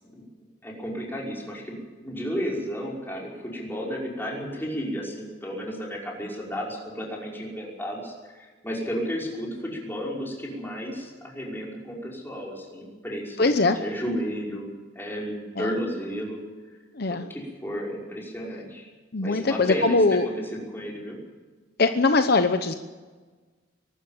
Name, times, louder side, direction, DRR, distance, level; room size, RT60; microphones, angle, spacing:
voice 1, 0.6-14.7 15.0-16.4 17.1-18.9 19.2-21.2, equal, 10° left, -2 dB, 5.6 m, -33 dB
voice 2, 13.4-13.8 15.6-15.7 17.0-17.3 19.1-20.3 21.8-22.7, left 3 dB, 60° left, 8 dB, 0.9 m, -21 dB
23.0 x 12.5 x 9.1 m, 1.4 s
head